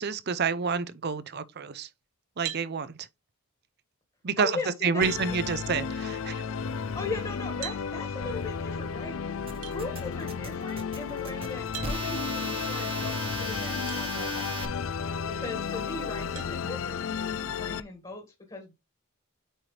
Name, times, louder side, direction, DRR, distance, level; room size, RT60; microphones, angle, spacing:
voice 1, 0.0-1.9 2.4-2.9 4.2-6.4, right 5 dB, 50° right, 0.6 m, -29 dB
sound 1, 2.4-2.7 4.4-4.5 5.0-5.2 7.6-7.8 9.6-9.8 11.7-12.0 13.9-14.0 14.7-14.8 16.3-16.5, right 12 dB, 85° right, 1.7 m, -38 dB
voice 2, 4.4-5.3 6.9-18.7, left 3 dB, 25° left, 1.7 m, -39 dB
Musical instrument, 5.0-17.8, left 6 dB, 65° left, 0.5 m, -33 dB
sound 2, 9.5-14.7, right 3 dB, 25° right, 1.1 m, -37 dB
8.9 x 4.5 x 3.2 m
head